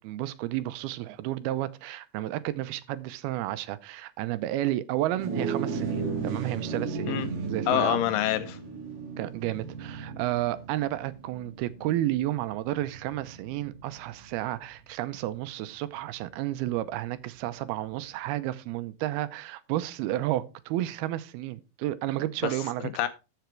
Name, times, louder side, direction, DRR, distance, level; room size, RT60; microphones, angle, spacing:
voice 1, 0.0-8.0 9.2-22.9, right 14 dB, 90° right, 2.7 m, -31 dB
sound 1, 5.1-14.7, right 4 dB, 60° right, 3.7 m, -35 dB
voice 2, 7.7-8.6 22.4-23.1, left 12 dB, 75° left, 2.1 m, -27 dB
13.5 x 5.9 x 4.5 m
omnidirectional pair, 4.3 m